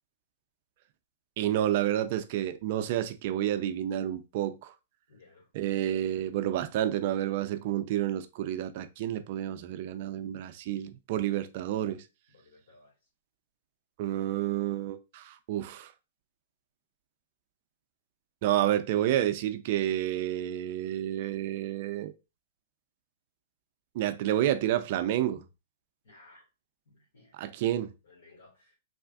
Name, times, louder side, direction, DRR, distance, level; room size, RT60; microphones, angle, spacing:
voice 1, 1.4-4.7 5.5-12.0 14.0-15.9 18.4-22.1 23.9-25.4 27.3-27.9, right 12 dB, 50° right, 0.4 m, -29 dB
voice 2, 5.1-5.5 12.3-12.9 26.0-26.4 26.8-27.6 28.0-28.8, left 3 dB, 80° left, 1.7 m, -58 dB
3.3 x 2.5 x 2.4 m
hypercardioid pair, 135°, 0 cm